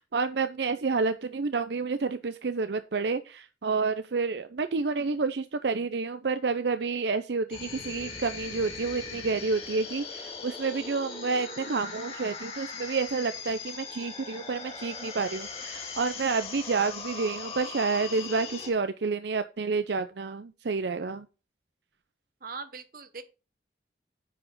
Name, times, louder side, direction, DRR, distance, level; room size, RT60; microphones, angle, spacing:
voice 1, 0.1-21.3, right 4 dB, 75° right, 0.6 m, -29 dB
sound 1, 7.5-18.7, left 5 dB, 30° left, 2.4 m, -40 dB
voice 2, 22.4-23.2, right 4 dB, 50° right, 1.1 m, -40 dB
10.0 x 4.9 x 5.3 m
head